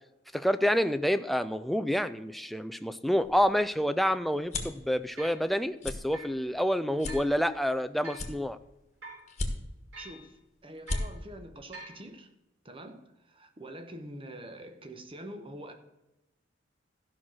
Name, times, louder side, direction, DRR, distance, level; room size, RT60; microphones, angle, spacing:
voice 1, 0.3-8.6, equal, ahead, 0.4 m, -28 dB
sound 1, 3.2-4.8 5.3-5.5 5.8-6.0 6.5-6.6 7.0-7.8 8.1-8.8 9.3-9.9 10.4-10.5 10.7-11.0, left 2 dB, 35° left, 1.4 m, -35 dB
sound 2, 4.2-4.3 5.2-5.4 6.1-6.4 7.1-7.3 8.0-8.3 9.0-9.3 9.9-10.3 10.9-11.1 11.7-12.0, right 2 dB, 90° right, 4.4 m, -45 dB
voice 2, 10.0-12.3 12.6-15.7, right 1 dB, 30° right, 1.1 m, -45 dB
13.5 x 5.9 x 6.3 m
head